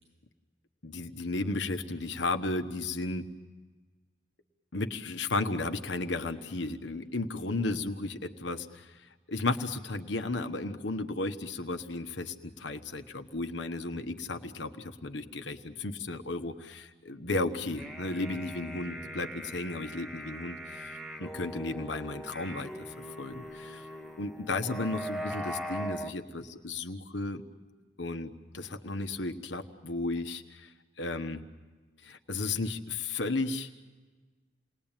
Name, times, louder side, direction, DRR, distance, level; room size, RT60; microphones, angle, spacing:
voice 1, 0.8-3.3 4.7-23.9 24.2-27.4 28.0-31.4 32.0-33.7, left 2 dB, 75° left, 7 dB, 1.2 m, -34 dB
sound 1, 17.6-26.1, equal, ahead, 1.3 m, -41 dB
29.0 x 20.5 x 9.0 m, 1.3 s
head